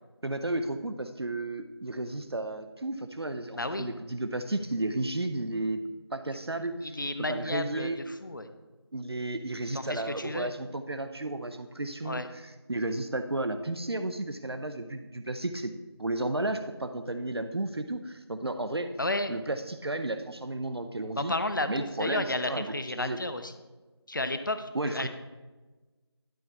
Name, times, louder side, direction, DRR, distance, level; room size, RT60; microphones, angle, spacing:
voice 1, 0.2-5.8 6.1-7.0 7.3-8.0 8.9-15.7 16.0-18.9 19.3-21.3 21.7-22.7 23.0-23.2 24.7-25.1, right 2 dB, 65° right, 7 dB, 0.6 m, -33 dB
voice 2, 3.6-3.9 6.8-8.5 9.7-10.5 12.0-12.3 19.0-19.3 21.2-23.5 24.1-25.1, left 2 dB, 50° left, 9 dB, 0.6 m, -32 dB
11.5 x 4.0 x 4.6 m, 1.2 s
figure-of-eight pair, 175°, 14 cm